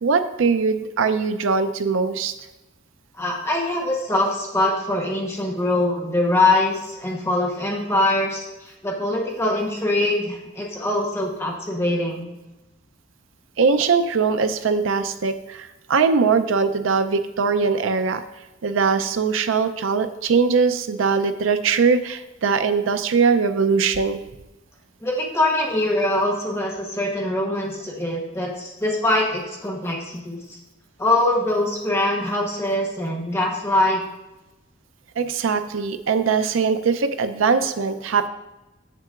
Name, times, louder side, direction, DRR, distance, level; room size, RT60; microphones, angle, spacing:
voice 1, 0.0-2.3 13.6-18.2 18.6-24.2 35.2-38.3, right 5 dB, 85° right, 10 dB, 0.5 m, -21 dB
voice 2, 3.2-12.3 25.0-30.4 31.0-34.0, left 1 dB, 15° left, -2 dB, 0.9 m, -23 dB
7.7 x 7.4 x 2.4 m, 1.0 s
head